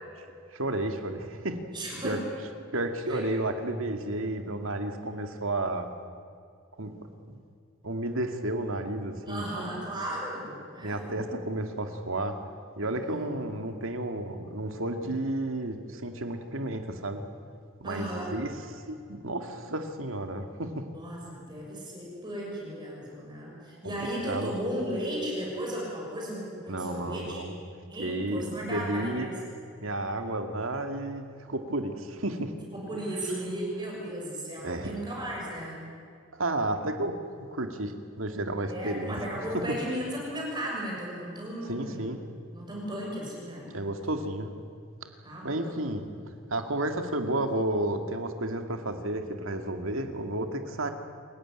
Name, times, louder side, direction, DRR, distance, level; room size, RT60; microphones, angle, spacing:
voice 1, 0.5-1.6 2.0-2.2 2.7-5.9 6.8-6.9 7.3-7.4 7.8-9.6 10.8-12.4 12.8-17.2 17.8-20.9 23.8-23.9 24.3-24.5 26.7-27.6 28.0-29.3 29.8-32.5 32.9-33.1 33.4-33.6 34.6-35.0 36.3-39.2 39.5-39.8 41.7-42.2 43.7-44.5 45.4-46.0 46.5-50.9, right 1 dB, 80° right, 6 dB, 2.1 m, -32 dB
voice 2, 1.7-2.2 3.1-3.2 9.3-11.2 12.9-13.3 17.8-18.3 20.9-27.4 27.8-29.4 32.7-35.8 38.7-42.1 42.5-43.7 45.2-45.8, right 1 dB, 20° right, -3 dB, 6.7 m, -35 dB
27.0 x 15.5 x 10.0 m, 2.3 s
head